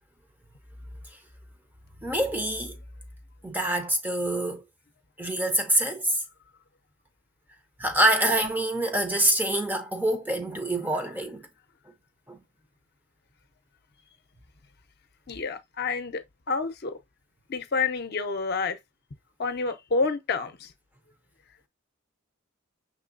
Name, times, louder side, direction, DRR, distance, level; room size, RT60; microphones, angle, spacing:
voice 1, 2.0-2.7 3.4-4.6 5.2-6.2 7.8-11.5 12.3-12.4, right 1 dB, 10° right, 0.5 m, -25 dB
voice 2, 15.3-16.2 16.5-17.0 17.5-18.8 19.4-20.7, left 4 dB, 50° left, 0.6 m, -28 dB
6.0 x 3.2 x 2.5 m
head